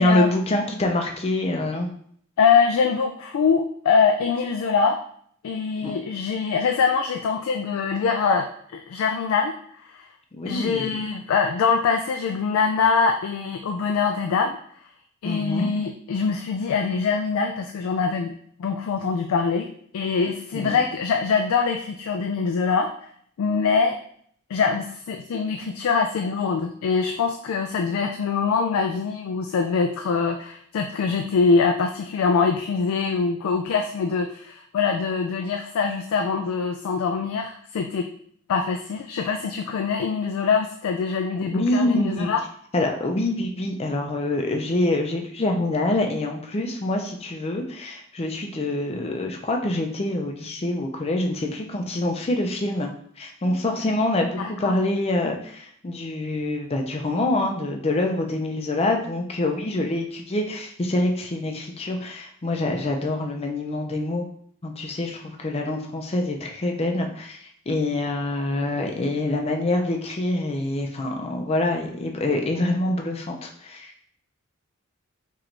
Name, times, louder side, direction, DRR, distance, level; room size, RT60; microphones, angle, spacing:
voice 1, 0.0-1.9 5.8-5.9 10.3-10.9 15.2-15.7 20.5-20.8 41.5-42.3 42.7-64.2 64.6-67.4 67.7-73.9, left 1 dB, 30° left, 2 dB, 0.5 m, -25 dB
voice 2, 2.4-5.0 5.4-9.5 9.8-10.1 10.5-14.6 15.2-18.3 18.6-19.7 19.9-23.1 23.4-24.0 24.5-38.1 38.5-42.4 54.4-54.8, left 5 dB, 85° left, 4 dB, 0.3 m, -23 dB
4.5 x 3.1 x 2.6 m, 0.62 s
head